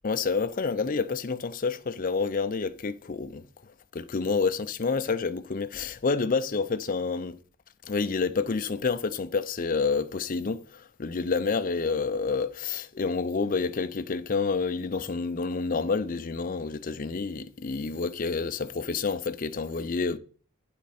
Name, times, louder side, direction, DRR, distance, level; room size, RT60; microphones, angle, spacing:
voice 1, 0.0-3.4 3.9-7.4 7.8-20.2, left 4 dB, 40° left, 0.5 m, -28 dB
9.2 x 5.1 x 4.3 m
head